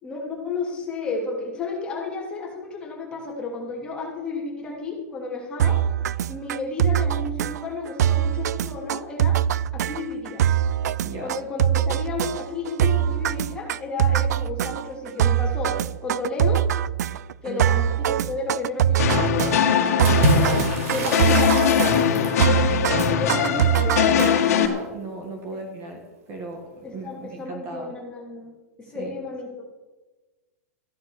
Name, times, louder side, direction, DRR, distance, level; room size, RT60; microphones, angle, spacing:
voice 1, 0.0-5.8 6.3-9.4 9.7-10.4 11.2-15.7 16.0-16.7 17.4-20.3 20.9-22.3 23.2-24.3 25.5-25.6 26.8-28.5 28.8-29.6, left 3 dB, 10° left, -2 dB, 2.9 m, -32 dB
sound 1, 5.6-24.7, right 10 dB, 85° right, 0.5 m, -23 dB
voice 2, 11.0-11.4 17.4-17.8 23.3-27.9 28.9-29.1, right 2 dB, 25° right, 3 dB, 1.8 m, -35 dB
sound 2, 19.0-24.7, left 8 dB, 65° left, 2.0 m, -21 dB
Water / Splash splatter, 20.0-22.4, right 1 dB, 55° right, 5.2 m, -26 dB
14.0 x 10.5 x 6.4 m, 1.2 s
supercardioid pair, 175°, 9 cm